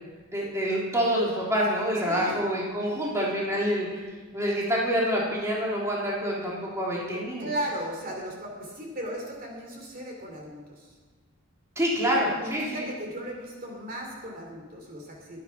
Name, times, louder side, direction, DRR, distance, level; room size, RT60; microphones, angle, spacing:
voice 1, 0.3-7.5 11.7-12.9, equal, 15° right, -5 dB, 3.4 m, -27 dB
voice 2, 2.0-2.4 7.4-10.9 12.4-15.4, right 1 dB, 40° right, 0 dB, 3.0 m, -36 dB
22.0 x 9.4 x 5.8 m, 1.4 s
head